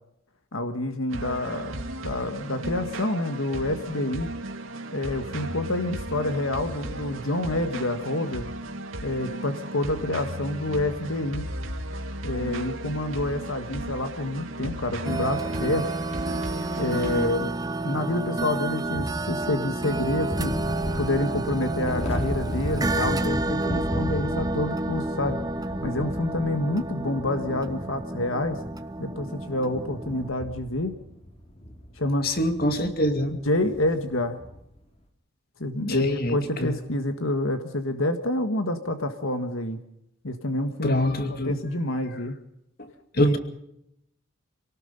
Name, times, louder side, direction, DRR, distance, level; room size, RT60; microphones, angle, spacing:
voice 1, 0.5-4.3 4.9-8.5 9.0-11.5 12.2-15.9 16.8-17.5 17.8-20.6 21.0-25.4 25.8-28.6 29.0-30.9 32.0-32.4 33.4-34.4 35.6-39.8 40.2-41.1 41.4-42.4 43.2-43.4, left 1 dB, 75° left, 7 dB, 1.7 m, -28 dB
sound 1, 1.1-17.3, right 1 dB, 75° right, 2.5 m, -35 dB
sound 2, 15.0-30.3, right 2 dB, 20° right, 0.8 m, -30 dB
sound 3, 18.9-34.7, equal, 30° left, 2.9 m, -36 dB
voice 2, 32.2-33.4 35.8-36.8 40.8-41.5 43.1-43.4, left 1 dB, 45° left, 7 dB, 2.4 m, -25 dB
27.5 x 18.5 x 5.4 m, 0.80 s
head